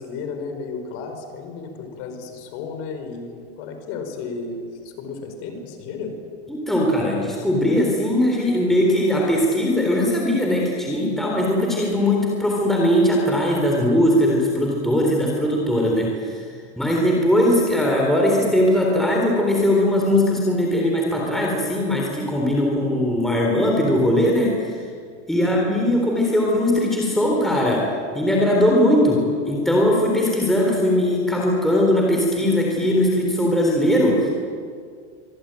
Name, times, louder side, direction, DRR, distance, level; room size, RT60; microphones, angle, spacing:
voice 1, 0.0-6.2 25.4-25.6, left 4 dB, 40° left, 5 dB, 5.0 m, -33 dB
voice 2, 6.5-16.4 16.8-24.8 25.3-34.3, left 1 dB, ahead, -2 dB, 3.6 m, -20 dB
25.5 x 23.5 x 9.0 m, 2.1 s
supercardioid pair, 160°, 35 cm